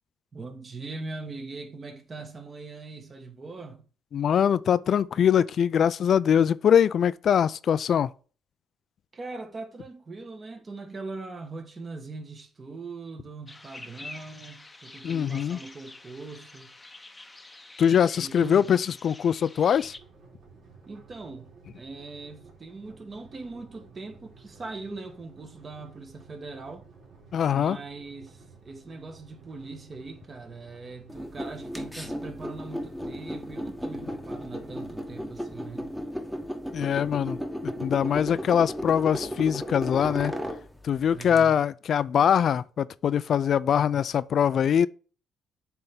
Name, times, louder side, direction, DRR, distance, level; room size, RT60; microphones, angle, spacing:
voice 1, 0.3-3.8 9.1-16.7 18.2-18.7 20.9-26.9 27.5-35.9 41.1-41.6, right 3 dB, 35° right, 1.5 m, -41 dB
voice 2, 4.1-8.1 15.0-15.6 17.8-19.9 27.3-27.8 36.7-37.4 37.6-40.3 40.8-44.9, left 8 dB, 60° left, 0.3 m, -23 dB
sound 1, 13.5-20.0, left 2 dB, 15° left, 0.7 m, -47 dB
sound 2, 19.7-34.5, right 4 dB, 70° right, 2.7 m, -54 dB
sound 3, 31.1-41.4, equal, 5° right, 1.1 m, -35 dB
7.7 x 3.4 x 5.5 m
cardioid pair, 90°, 0 cm